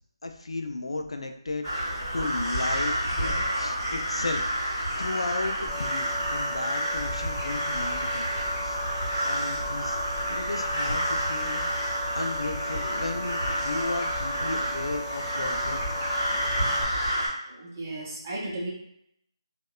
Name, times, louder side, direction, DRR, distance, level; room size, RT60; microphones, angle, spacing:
voice 1, 0.2-4.5 5.0-6.0 6.3-8.3 8.6-8.8 9.2-10.0 10.4-11.6 12.2-15.8, left 2 dB, 90° left, 5 dB, 0.4 m, -34 dB
sound 1, 1.6-17.3, equal, ahead, 1.3 m, -29 dB
sound 2, 5.7-16.8, left 1 dB, 25° left, 1.4 m, -38 dB
voice 2, 17.5-18.7, right 2 dB, 15° right, -5 dB, 0.5 m, -34 dB
2.8 x 2.1 x 2.2 m, 0.75 s
figure-of-eight pair, 175°, 3 cm